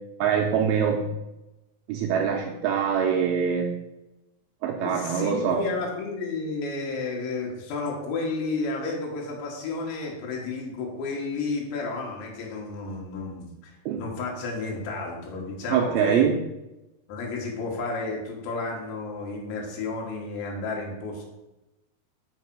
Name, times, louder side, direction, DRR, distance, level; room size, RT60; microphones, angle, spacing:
voice 1, 0.2-1.0 1.9-3.7 4.6-5.6 13.9-14.0 15.7-16.3, right 7 dB, 90° right, 1 dB, 2.1 m, -24 dB
voice 2, 4.8-16.3 17.1-21.3, left 3 dB, 90° left, -1 dB, 3.7 m, -32 dB
6.4 x 4.8 x 6.0 m, 0.97 s
omnidirectional pair, 5.1 m